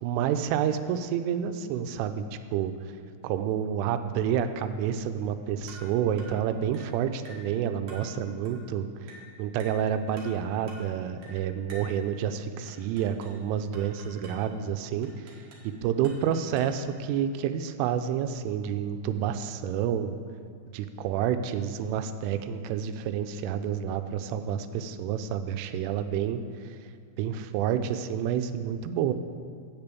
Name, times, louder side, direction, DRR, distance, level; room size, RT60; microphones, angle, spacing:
voice 1, 0.0-2.7 3.2-8.9 9.4-15.1 15.6-20.1 20.7-26.4 27.2-29.1, right 9 dB, 85° right, 9 dB, 3.1 m, -29 dB
sound 1, 5.7-5.9 6.2-6.4 6.7-6.9 7.3-7.5 7.9-8.1 8.5-8.6 9.1-9.3 9.6-9.8 10.2-10.4 10.7-10.9 11.2-11.4 11.7-12.0 12.7-13.4 13.7-14.4 15.0-15.7 16.0-16.8, right 1 dB, 60° right, 2.0 m, -48 dB
8.2 x 6.9 x 8.2 m, 2.2 s
omnidirectional pair, 5.6 m